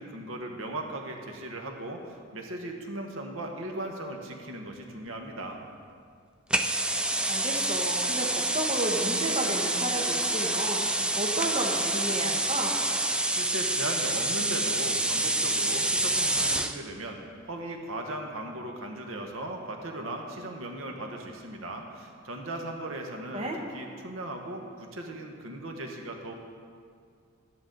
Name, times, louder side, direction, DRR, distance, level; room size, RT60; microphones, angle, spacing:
voice 1, 0.0-5.6 13.3-17.2 17.5-23.5 23.7-26.3, right 1 dB, 75° right, 2 dB, 1.1 m, -37 dB
sound 1, 6.5-16.8, right 2 dB, 5° right, 0.4 m, -27 dB
voice 2, 7.3-12.8 23.3-23.6, right 1 dB, 30° right, 0 dB, 1.2 m, -32 dB
13.5 x 9.9 x 3.9 m, 2.2 s
head